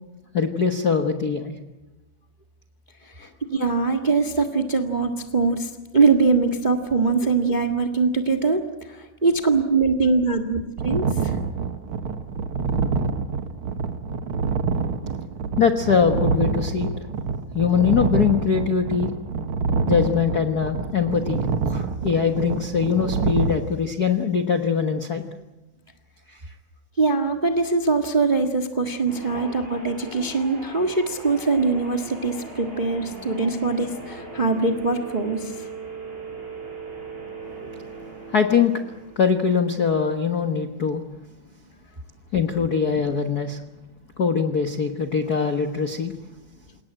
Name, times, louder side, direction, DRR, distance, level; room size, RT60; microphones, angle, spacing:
voice 1, 0.3-1.5 15.6-16.9 17.5-19.1 19.9-25.2 26.3-26.4 29.3-29.5 38.3-38.8 39.2-41.0 42.3-43.6 44.2-46.1, left 6 dB, 85° left, 6 dB, 0.8 m, -22 dB
voice 2, 3.1-11.3 27.0-35.7, right 4 dB, 30° right, 7 dB, 0.7 m, -22 dB
sound 1, 10.8-23.5, right 5 dB, 55° right, 1.7 m, -26 dB
sound 2, 29.0-39.4, right 3 dB, 15° right, 5.7 m, -39 dB
28.5 x 18.5 x 8.9 m, 1.1 s
omnidirectional pair, 3.8 m